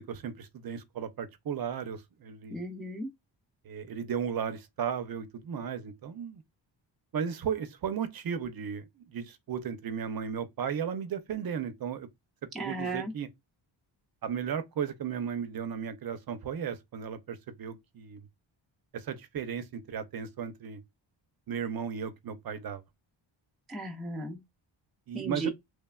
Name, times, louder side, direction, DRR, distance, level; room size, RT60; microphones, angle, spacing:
voice 1, 0.0-2.6 3.6-6.4 7.1-12.1 12.6-13.3 14.2-18.2 18.9-20.8 21.5-22.8 25.1-25.5, right 7 dB, 50° right, 0.5 m, -35 dB
voice 2, 2.5-3.1 12.5-13.1 23.7-24.4 25.1-25.5, right 2 dB, ahead, 0.3 m, -35 dB
3.2 x 2.0 x 2.2 m
wide cardioid pair, 160°, 46 cm